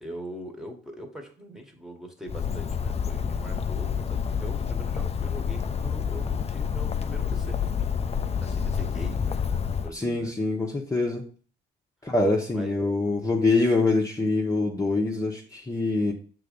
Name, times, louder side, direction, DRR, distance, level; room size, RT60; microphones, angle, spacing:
voice 1, 0.0-7.6 8.4-10.3 12.5-12.7, equal, 5° right, 2 dB, 1.6 m, -42 dB
Bird, 2.3-9.9, left 7 dB, 30° left, 0.6 m, -28 dB
voice 2, 9.9-11.2 12.0-16.1, left 2 dB, 15° left, -2 dB, 1.2 m, -24 dB
6.6 x 3.9 x 5.4 m, 0.42 s
cardioid pair, 90°, 20 cm